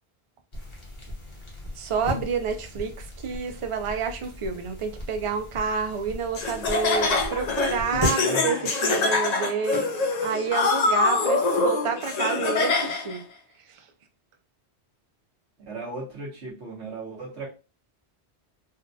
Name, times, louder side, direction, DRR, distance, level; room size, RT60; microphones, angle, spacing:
sound 1, 0.5-8.1, left 1 dB, 30° left, 0.9 m, -36 dB
voice 1, 1.8-9.8 10.2-13.2 13.7-13.9, right 5 dB, 60° right, 6 dB, 0.3 m, -29 dB
Laughter, 6.3-13.2, left 3 dB, 50° left, 0.5 m, -24 dB
voice 2, 8.2-8.7 15.7-17.5, right 2 dB, 80° right, -4 dB, 1.3 m, -36 dB
3.8 x 2.2 x 2.6 m, 0.32 s
omnidirectional pair, 1.1 m